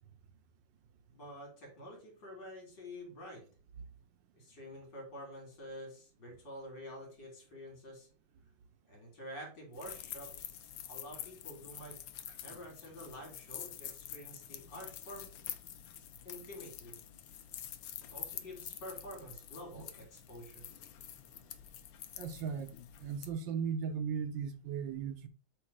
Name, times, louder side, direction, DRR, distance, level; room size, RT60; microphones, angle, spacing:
voice 1, 1.1-3.5 4.3-8.1 8.9-12.0 12.4-15.3 16.2-16.9 18.1-20.6, equal, 70° left, 3.7 m, -48 dB
sound 1, 9.7-23.3, left 11 dB, 85° left, 1.5 m, -47 dB
voice 2, 22.2-22.7 23.0-25.3, right 6 dB, 75° right, 1.4 m, -37 dB
7.9 x 3.4 x 4.8 m
omnidirectional pair, 2.1 m